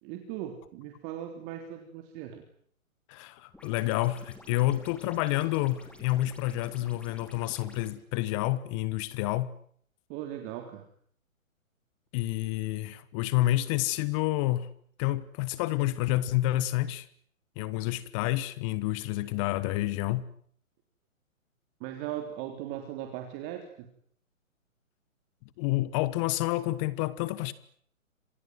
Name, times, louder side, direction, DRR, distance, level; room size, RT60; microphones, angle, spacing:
voice 1, 0.0-2.4 10.1-10.8 21.8-23.9, right 11 dB, 25° right, 3.4 m, -38 dB
voice 2, 3.1-9.5 12.1-14.7 15.0-17.1 17.6-20.3 25.6-27.5, left 16 dB, 25° left, 1.2 m, -29 dB
sound 1, 3.5-7.9, left 1 dB, 5° left, 4.7 m, -51 dB
27.5 x 27.0 x 7.9 m
figure-of-eight pair, 135°, 41 cm